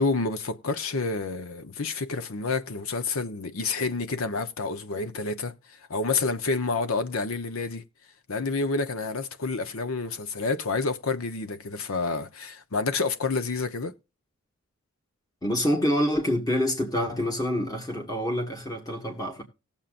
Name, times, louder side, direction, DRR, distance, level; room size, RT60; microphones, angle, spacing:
voice 1, 0.0-5.5 5.9-7.8 8.3-13.9, left 3 dB, 80° left, 0.9 m, -29 dB
voice 2, 15.4-19.4, equal, 20° left, 1.8 m, -26 dB
18.0 x 7.4 x 2.5 m
head